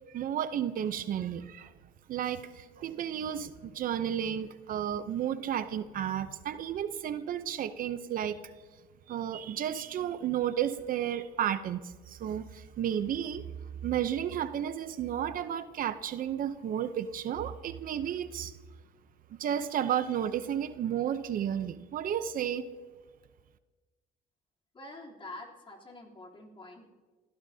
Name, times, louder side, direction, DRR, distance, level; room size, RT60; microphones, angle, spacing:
voice 1, 0.1-1.7 2.1-8.4 9.1-13.4 13.8-18.5 19.4-22.7, right 10 dB, 55° right, 11 dB, 0.7 m, -32 dB
voice 2, 24.7-26.9, left 2 dB, 30° left, -2 dB, 3.3 m, -46 dB
26.5 x 15.5 x 2.8 m, 1.3 s
cardioid pair, 110°, 17 cm